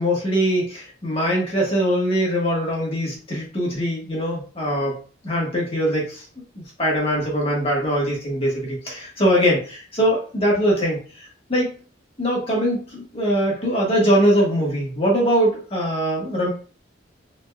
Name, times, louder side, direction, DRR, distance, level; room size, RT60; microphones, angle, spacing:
voice 1, 0.0-4.9 5.2-6.2 6.5-11.0 11.5-11.7 12.2-16.5, equal, 30° left, -4 dB, 1.4 m, -22 dB
3.9 x 3.5 x 2.3 m, 0.40 s
head